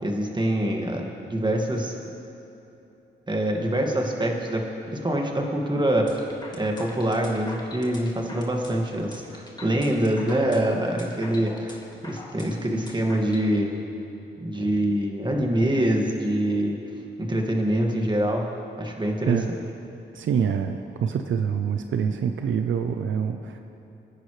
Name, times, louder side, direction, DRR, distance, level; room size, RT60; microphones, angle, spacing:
voice 1, 0.0-2.0 3.3-4.6 5.0-6.2 6.5-11.8 12.0-13.7 14.4-16.8 17.2-18.4 18.8-19.4, right 1 dB, 25° right, 0 dB, 2.0 m, -25 dB
sound 1, 6.1-13.5, left 2 dB, 20° left, 2.1 m, -43 dB
voice 2, 20.1-23.6, right 7 dB, 80° right, 6 dB, 0.6 m, -25 dB
23.0 x 9.9 x 3.3 m, 2.9 s
cardioid pair, 70°, 20 cm